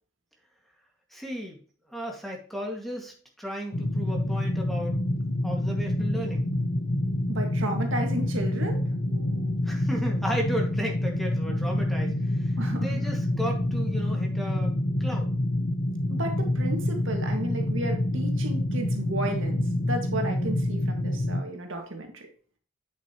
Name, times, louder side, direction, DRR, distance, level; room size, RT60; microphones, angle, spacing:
voice 1, 1.1-1.6 1.9-5.0 5.4-6.4 9.6-14.7 15.0-15.3, equal, ahead, 0 dB, 2.0 m, -34 dB
sound 1, 3.7-21.4, left 1 dB, 60° left, 1.0 m, -27 dB
voice 2, 7.3-9.6 12.6-13.0 16.1-22.2, right 1 dB, 75° right, 3 dB, 1.9 m, -33 dB
8.8 x 7.2 x 3.0 m, 0.43 s
head